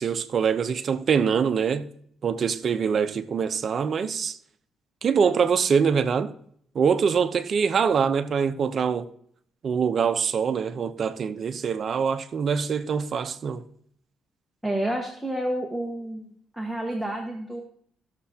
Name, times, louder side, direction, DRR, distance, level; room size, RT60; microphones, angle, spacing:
voice 1, 0.0-1.9 2.2-4.4 5.0-6.3 6.7-9.1 9.6-13.6, right 6 dB, 50° right, 0.8 m, -24 dB
voice 2, 14.6-16.3 16.6-17.6, right 1 dB, ahead, 1.5 m, -29 dB
16.0 x 6.8 x 2.9 m
cardioid pair, 90°, 0 cm